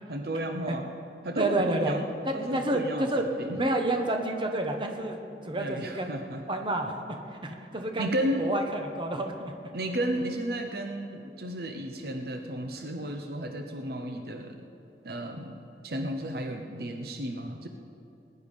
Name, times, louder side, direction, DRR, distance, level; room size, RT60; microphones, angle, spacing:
voice 1, 0.1-0.9 1.2-2.1 2.3-3.6 5.5-6.4 8.0-8.5 9.7-14.6 15.0-15.6 15.8-17.7, right 1 dB, 60° right, 5 dB, 0.8 m, -33 dB
voice 2, 1.4-2.0 2.3-3.2 3.6-5.2 5.4-6.2 6.5-7.0 7.4-8.1 8.4-9.5, right 1 dB, 30° right, 3 dB, 1.1 m, -29 dB
20.0 x 10.5 x 5.3 m, 2.6 s
head